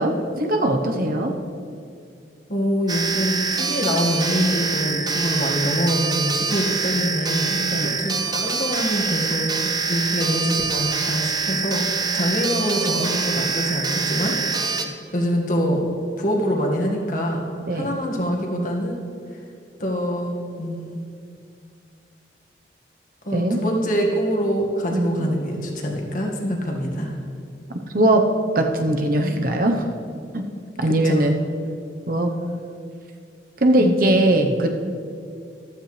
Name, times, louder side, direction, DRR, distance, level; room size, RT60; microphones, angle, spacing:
voice 1, 0.0-1.3 7.6-8.0 17.7-17.9 23.3-23.6 24.9-25.4 27.9-28.2 28.5-29.8 30.3-30.4 30.8-31.4 32.1-32.3 33.6-34.7, right 1 dB, 55° right, 4 dB, 1.0 m, -20 dB
voice 2, 2.5-15.9 16.2-19.0 19.8-21.0 23.2-27.2 31.0-31.3 33.8-34.0, equal, 50° left, 0 dB, 1.9 m, -25 dB
sound 1, 2.9-14.8, right 4 dB, 25° right, 0.7 m, -25 dB
14.5 x 13.0 x 3.4 m, 2.4 s
head